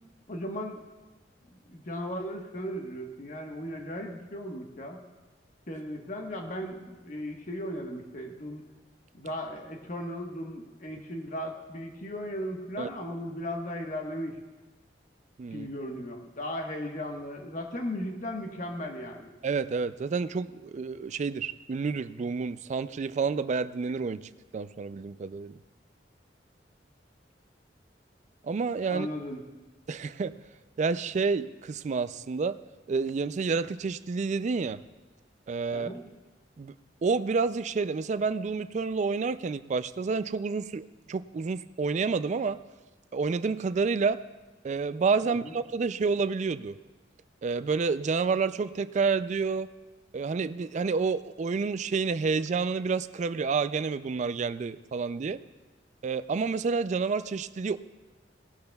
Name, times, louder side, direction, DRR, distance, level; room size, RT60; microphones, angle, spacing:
voice 1, 0.3-0.8 1.5-5.0 5.7-8.6 9.1-14.4 15.5-19.3 28.9-29.4 35.7-36.0 45.2-45.5, equal, 45° left, 2 dB, 1.3 m, -36 dB
voice 2, 19.4-25.5 28.4-29.1 29.9-30.3 30.8-32.6 32.9-34.8 35.5-35.9 36.6-36.7 37.0-42.6 43.1-44.2 44.6-46.8 47.4-49.7 50.1-55.4 56.0-57.8, right 4 dB, 40° right, 14 dB, 0.3 m, -29 dB
18.0 x 12.0 x 2.3 m, 1.2 s
head